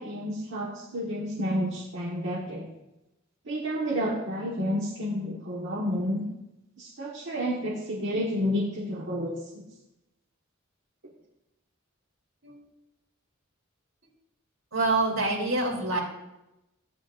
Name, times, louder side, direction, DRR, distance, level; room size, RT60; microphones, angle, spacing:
voice 1, 0.0-2.7 3.4-6.2 6.8-9.6, equal, 65° right, -4 dB, 1.5 m, -30 dB
voice 2, 14.7-16.0, right 2 dB, 90° right, -2 dB, 3.4 m, -26 dB
15.0 x 9.0 x 2.6 m, 0.93 s
head